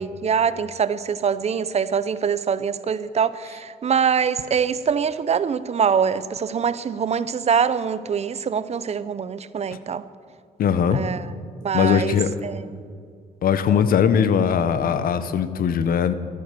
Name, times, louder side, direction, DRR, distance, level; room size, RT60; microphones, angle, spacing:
voice 1, 0.0-10.0 10.9-11.2 11.6-12.2 12.4-12.6, right 7 dB, 45° right, 15 dB, 0.6 m, -24 dB
voice 2, 10.6-11.0 11.7-12.3 13.4-16.1, left 7 dB, 65° left, 12 dB, 0.9 m, -20 dB
13.0 x 10.0 x 6.8 m, 2.2 s
cardioid pair, 90°, 16 cm